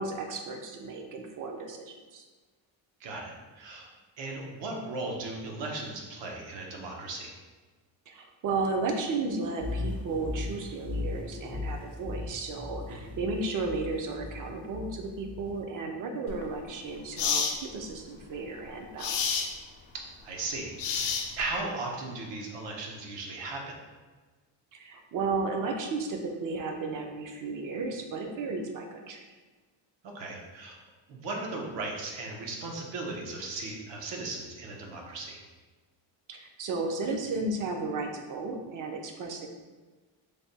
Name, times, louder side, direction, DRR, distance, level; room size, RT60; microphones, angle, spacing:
voice 1, 0.0-2.2 8.1-19.5 24.7-29.2 36.3-39.5, right 3 dB, 45° right, 3 dB, 0.5 m, -34 dB
voice 2, 3.0-3.9 4.2-7.4 12.9-13.1 19.9-23.8 30.0-30.8 31.1-35.4, right 2 dB, 75° right, 0 dB, 0.8 m, -37 dB
sound 1, 9.6-15.6, left 3 dB, 15° left, 0.4 m, -37 dB
sound 2, 16.3-16.4 17.2-17.6 19.0-19.5 20.8-21.5, left 6 dB, 75° left, 0.6 m, -29 dB
3.3 x 2.2 x 4.0 m, 1.3 s
cardioid pair, 145°, 43 cm